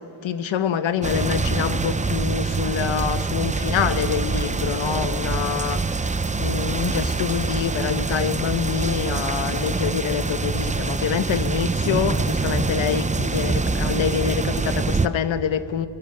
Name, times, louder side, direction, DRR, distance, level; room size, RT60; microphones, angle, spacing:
voice 1, 0.2-15.9, left 8 dB, 85° left, 1.0 m, -26 dB
sound 1, 1.0-15.1, right 4 dB, 15° right, 0.5 m, -25 dB
22.0 x 21.5 x 6.7 m
wide cardioid pair, 125°, 45 cm